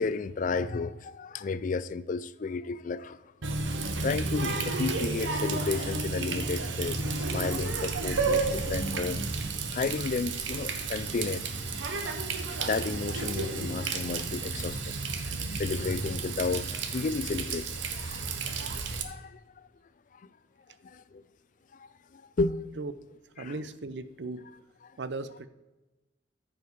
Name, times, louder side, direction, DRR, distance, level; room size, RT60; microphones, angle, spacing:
voice 1, 0.0-3.2 3.7-3.8 4.0-9.2 9.7-11.5 12.6-17.7 17.9-18.3 19.0-19.7 20.8-21.2 21.7-21.9 22.1-22.8 23.4-23.5, left 4 dB, 45° left, 0.4 m, -33 dB
Water tap faucet, 3.4-19.0, right 3 dB, 85° right, 1.1 m, -32 dB
voice 2, 23.4-24.5 25.0-25.5, right 3 dB, 65° right, 0.6 m, -37 dB
14.0 x 5.1 x 4.7 m
head